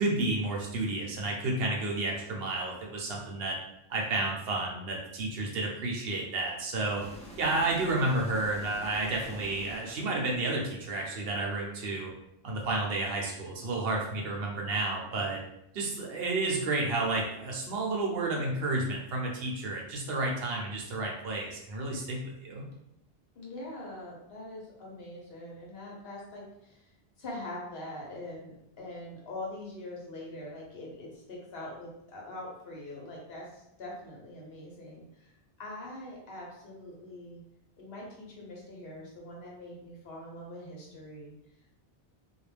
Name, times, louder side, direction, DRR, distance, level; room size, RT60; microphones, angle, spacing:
voice 1, 0.0-3.6 3.9-7.0 7.4-12.1 12.4-15.4 15.7-22.7, right 2 dB, 75° right, -1 dB, 0.9 m, -31 dB
sound 1, 7.0-11.0, left 1 dB, 10° left, 0.3 m, -48 dB
voice 2, 23.3-26.9 27.2-35.3 35.6-37.4 37.8-41.3, left 1 dB, 70° left, -3 dB, 1.0 m, -43 dB
2.4 x 2.2 x 3.2 m, 0.81 s
omnidirectional pair, 1.0 m